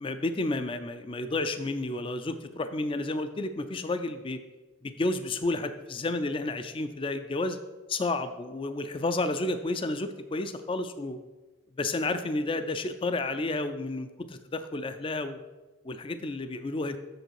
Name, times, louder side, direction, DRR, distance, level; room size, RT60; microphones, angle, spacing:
voice 1, 0.0-4.4 4.8-7.6 7.9-11.2 11.8-15.4 15.8-17.0, left 2 dB, 25° left, 10 dB, 0.4 m, -31 dB
7.8 x 6.9 x 4.7 m, 1.2 s
head